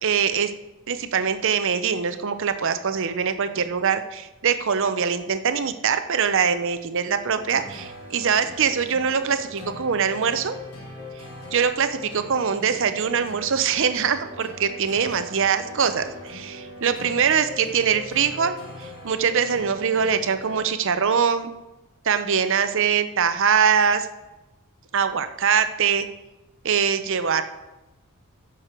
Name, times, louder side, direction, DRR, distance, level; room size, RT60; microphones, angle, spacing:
voice 1, 0.0-0.5 0.9-10.6 11.5-21.5 22.0-24.1 24.9-26.1 26.6-27.4, right 6 dB, 60° right, 10 dB, 0.7 m, -23 dB
sound 1, 7.3-21.1, left 1 dB, 80° left, 3.2 m, -41 dB
14.0 x 6.2 x 4.5 m, 1.0 s
head